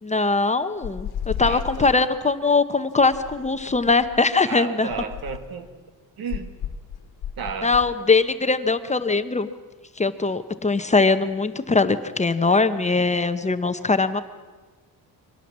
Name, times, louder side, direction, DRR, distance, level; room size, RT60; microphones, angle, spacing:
voice 1, 0.0-4.9 7.6-9.5 10.0-14.2, left 3 dB, 20° left, 10 dB, 0.8 m, -21 dB
sound 1, 0.8-2.1 3.0-4.2 4.9-5.6 6.3-7.9, left 9 dB, 85° left, 1.3 m, -34 dB
voice 2, 1.4-1.9 4.5-5.7 6.2-6.5 7.4-7.7, right 6 dB, 70° right, 10 dB, 2.0 m, -33 dB
24.0 x 18.0 x 7.3 m, 1.3 s
cardioid pair, 140°, 37 cm